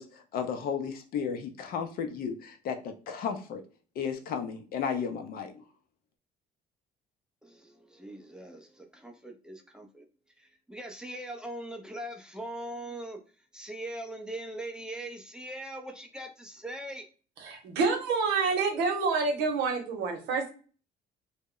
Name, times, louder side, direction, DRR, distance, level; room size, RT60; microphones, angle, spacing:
voice 1, 0.0-3.6 4.0-5.6, left 6 dB, 60° left, 0.5 m, -34 dB
voice 2, 7.4-10.1 10.4-17.1, right 1 dB, 5° right, 0.4 m, -41 dB
voice 3, 17.4-20.5, right 4 dB, 85° right, 0.8 m, -28 dB
2.1 x 2.0 x 3.6 m
cardioid pair, 110°, 17 cm